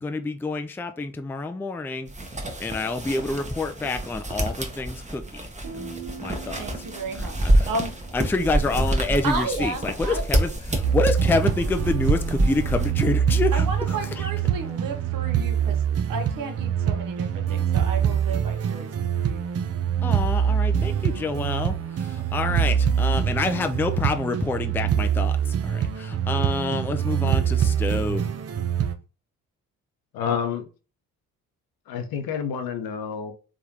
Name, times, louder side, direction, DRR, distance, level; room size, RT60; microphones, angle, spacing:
voice 1, 0.0-2.1 2.6-5.5 5.7-6.6 7.1-7.3 7.6-7.7 8.1-13.6 14.2-14.3 20.0-28.3, left 3 dB, 5° left, 0.4 m, -27 dB
sound 1, 2.1-12.9, right 1 dB, 15° right, 1.1 m, -27 dB
Guitar, 5.6-9.3, right 5 dB, 70° right, 1.6 m, -43 dB
voice 2, 6.6-7.9 9.2-10.2 13.5-15.8 16.1-18.9 19.2-19.5, right 3 dB, 50° right, 1.1 m, -33 dB
sound 2, 10.8-28.9, right 8 dB, 35° right, 0.6 m, -24 dB
voice 3, 30.1-30.7 31.9-33.3, left 7 dB, 60° left, 0.9 m, -29 dB
3.6 x 3.4 x 2.8 m
hypercardioid pair, 45°, 41 cm